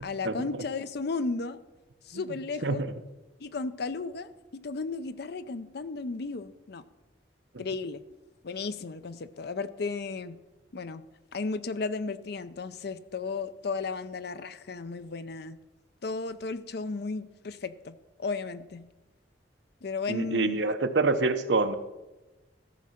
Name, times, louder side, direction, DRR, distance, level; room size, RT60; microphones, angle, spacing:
voice 1, 0.0-1.6 2.1-2.8 3.4-6.8 7.6-8.0 8.4-10.4 10.7-11.0 11.3-15.6 16.0-18.8 19.8-20.6, left 4 dB, 60° left, 13 dB, 0.6 m, -34 dB
voice 2, 20.1-21.8, right 3 dB, 70° right, 9 dB, 0.8 m, -26 dB
14.0 x 6.3 x 5.8 m, 1.1 s
head